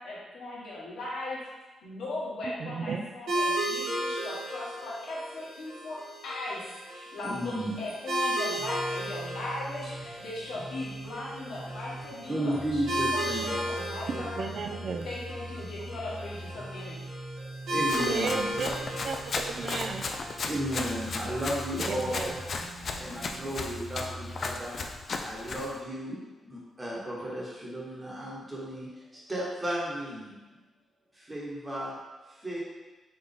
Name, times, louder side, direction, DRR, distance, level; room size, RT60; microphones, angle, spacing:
voice 1, 0.0-1.4 1.8-6.0 6.2-6.6 6.9-14.4 14.8-17.0 20.3-20.5, left 2 dB, 85° left, -7 dB, 1.4 m, -38 dB
voice 2, 2.6-3.0 14.1-15.1 18.1-20.1 21.8-22.4, right 5 dB, 60° right, 5 dB, 0.4 m, -34 dB
sound 1, 3.3-22.4, right 1 dB, 75° right, 1.1 m, -35 dB
voice 3, 7.2-7.7 12.3-13.5 17.4-18.5 20.4-22.4 23.0-24.8 25.2-26.2 26.4-30.4 31.1-32.0 32.3-32.6, equal, 15° right, -7 dB, 1.2 m, -34 dB
sound 2, 8.5-24.5, right 1 dB, 5° left, 1.0 m, -43 dB
Run, 17.8-25.7, left 3 dB, 50° left, 0.4 m, -36 dB
4.2 x 2.9 x 3.6 m, 1.2 s
cardioid pair, 95°, 0 cm